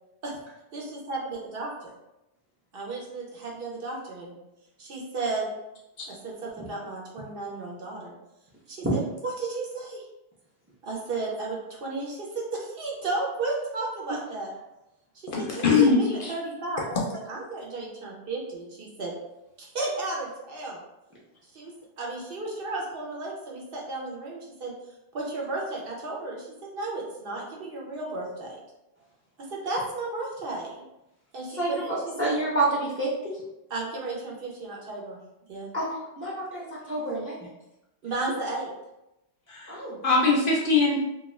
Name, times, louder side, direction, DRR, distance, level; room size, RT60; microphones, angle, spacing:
voice 1, 0.7-1.9 2.7-4.4 4.8-5.5 6.1-8.1 8.7-10.0 10.8-14.5 15.4-16.9 17.3-19.1 19.6-20.8 21.5-21.7 22.0-24.7 25.1-28.6 29.4-30.8 31.3-32.3 33.7-35.2 35.5-35.7 38.0-38.7, right 3 dB, 60° right, -2 dB, 0.8 m, -33 dB
voice 2, 15.3-16.3 39.5-41.0, left 4 dB, 60° left, -3 dB, 0.6 m, -22 dB
voice 3, 31.6-33.4 35.7-35.9 36.2-37.4 39.7-40.0, right 2 dB, 20° right, -5 dB, 0.4 m, -28 dB
2.4 x 2.3 x 3.0 m, 0.91 s
omnidirectional pair, 1.1 m